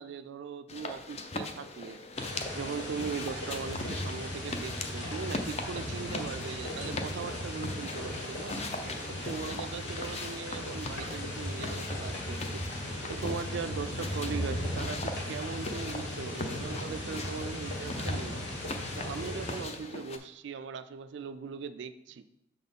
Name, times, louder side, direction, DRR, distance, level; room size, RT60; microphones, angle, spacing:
voice 1, 0.0-2.0 2.5-8.6 9.1-12.6 13.1-18.4 18.9-22.2, right 5 dB, 65° right, 11 dB, 0.3 m, -39 dB
sound 1, 0.7-20.2, left 2 dB, 30° left, 0.5 m, -41 dB
sound 2, 2.1-19.6, left 1 dB, 70° left, 2.3 m, -37 dB
6.7 x 4.2 x 5.3 m, 0.84 s
head